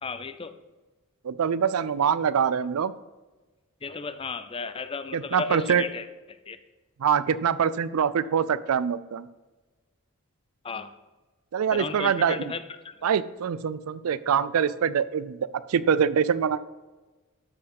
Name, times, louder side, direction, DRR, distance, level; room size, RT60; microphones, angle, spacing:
voice 1, 0.0-0.5 3.8-6.1 6.5-6.6 10.6-10.9 11.7-12.9, left 4 dB, 25° left, 11 dB, 0.5 m, -34 dB
voice 2, 1.2-2.9 5.1-5.8 7.0-9.3 11.5-12.5 13.0-16.6, right 7 dB, 80° right, 17 dB, 0.4 m, -24 dB
12.0 x 4.7 x 5.2 m, 1.2 s
head